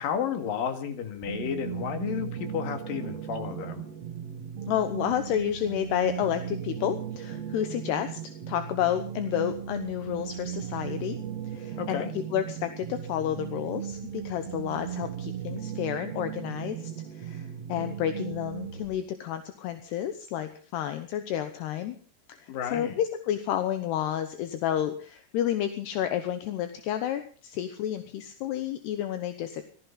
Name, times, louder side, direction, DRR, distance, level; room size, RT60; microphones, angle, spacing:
voice 1, 0.0-3.8 11.8-12.1 22.5-23.0, left 8 dB, 60° left, 7 dB, 3.5 m, -32 dB
sound 1, 1.2-18.9, right 9 dB, 55° right, 1.9 m, -37 dB
voice 2, 4.7-8.2 8.5-11.2 11.5-22.0 22.3-29.6, left 10 dB, 75° left, 9 dB, 3.0 m, -30 dB
17.5 x 14.5 x 5.7 m, 0.42 s
omnidirectional pair, 4.9 m